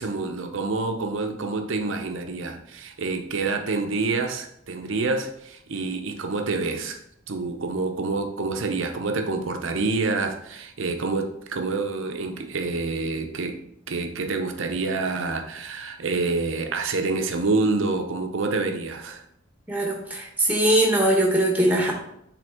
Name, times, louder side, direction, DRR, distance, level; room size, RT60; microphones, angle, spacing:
voice 1, 0.0-7.0 7.3-13.6 13.9-19.2, right 3 dB, 75° right, 5 dB, 0.7 m, -27 dB
voice 2, 19.7-21.9, right 1 dB, 10° right, -1 dB, 1.1 m, -21 dB
7.6 x 3.5 x 3.6 m, 0.75 s
head